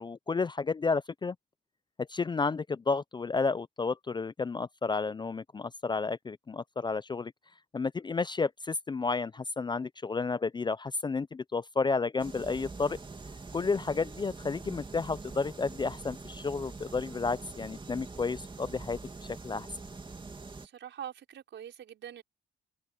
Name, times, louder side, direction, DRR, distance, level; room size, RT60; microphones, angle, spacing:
voice 1, 0.0-1.4 2.0-7.3 7.7-13.0 13.5-19.0 19.4-19.7, left 4 dB, 25° left, 0.4 m, -31 dB
sound 1, 12.2-20.7, right 3 dB, 25° right, 2.7 m, -44 dB
voice 2, 20.6-22.2, right 9 dB, 70° right, 5.4 m, -44 dB
cardioid pair, 90°, 20 cm